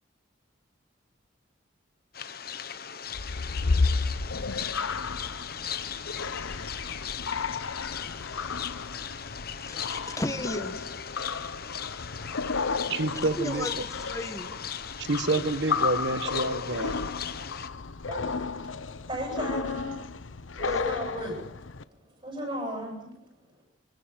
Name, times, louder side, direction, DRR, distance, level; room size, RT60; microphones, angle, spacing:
sound 1, 2.1-17.7, left 8 dB, 50° left, 1.2 m, -38 dB
sound 2, 3.1-21.8, left 4 dB, 90° left, 0.9 m, -33 dB
voice 1, 9.6-11.4 11.8-11.9 12.5-14.5 20.7-20.8, left 1 dB, 15° left, 1.3 m, -36 dB
voice 2, 12.9-13.8 15.0-17.1, right 2 dB, 65° right, 1.2 m, -28 dB
voice 3, 18.1-19.9 20.5-21.4 22.2-23.1, equal, 25° right, 7.4 m, -35 dB
24.5 x 17.0 x 7.4 m
head